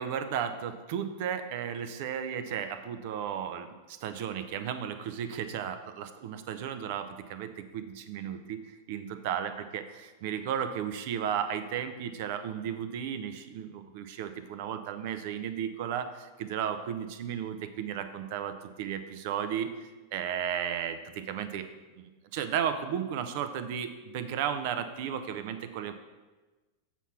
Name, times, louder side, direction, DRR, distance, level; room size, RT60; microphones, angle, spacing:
voice 1, 0.0-19.7 20.1-21.7 22.0-25.9, right 8 dB, 50° right, 9 dB, 0.6 m, -34 dB
7.0 x 4.3 x 5.8 m, 1.2 s
figure-of-eight pair, 90°, 0 cm